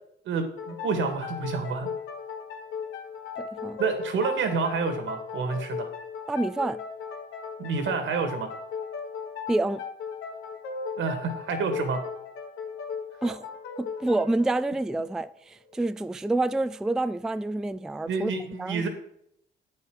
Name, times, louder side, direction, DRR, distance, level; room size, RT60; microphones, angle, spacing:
voice 1, 0.3-1.9 3.8-5.9 7.6-8.5 11.0-12.0 18.1-18.9, right 5 dB, 75° right, 2.0 m, -28 dB
sound 1, 0.6-15.9, left 6 dB, 85° left, 1.5 m, -37 dB
voice 2, 3.4-3.8 6.3-6.8 9.5-9.8 13.2-13.5 13.8-18.3 18.6-18.8, right 2 dB, 5° right, 0.3 m, -28 dB
9.2 x 5.4 x 6.2 m
cardioid pair, 90°, 20 cm